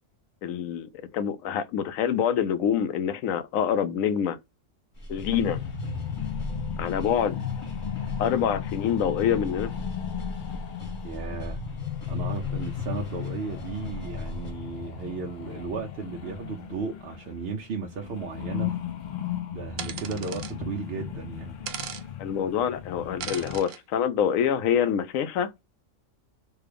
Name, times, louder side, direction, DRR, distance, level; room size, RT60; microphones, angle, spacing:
voice 1, 0.4-4.4 5.1-5.6 6.8-7.4 8.2-9.7 22.2-25.5, left 8 dB, 90° left, 1.0 m, -26 dB
sound 1, 4.9-14.5, left 1 dB, 25° left, 0.9 m, -39 dB
sound 2, 5.2-17.6 17.8-23.6, left 9 dB, 70° left, 0.4 m, -35 dB
voice 2, 11.0-11.6 12.1-18.8 19.5-21.6, right 5 dB, 60° right, 0.7 m, -35 dB
sound 3, 19.8-20.5 21.7-22.0 23.2-23.8, right 9 dB, 85° right, 1.0 m, -37 dB
3.3 x 2.2 x 3.3 m
omnidirectional pair, 1.4 m